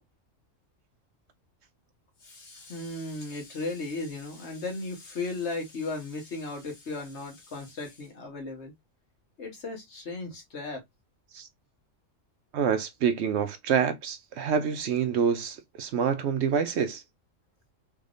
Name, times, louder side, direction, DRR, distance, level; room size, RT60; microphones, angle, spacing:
voice 1, 2.2-8.7 9.4-10.8, left 3 dB, 60° left, 1.6 m, -36 dB
voice 2, 12.5-17.0, right 7 dB, 65° right, 0.8 m, -27 dB
3.5 x 3.4 x 2.5 m
omnidirectional pair, 1.3 m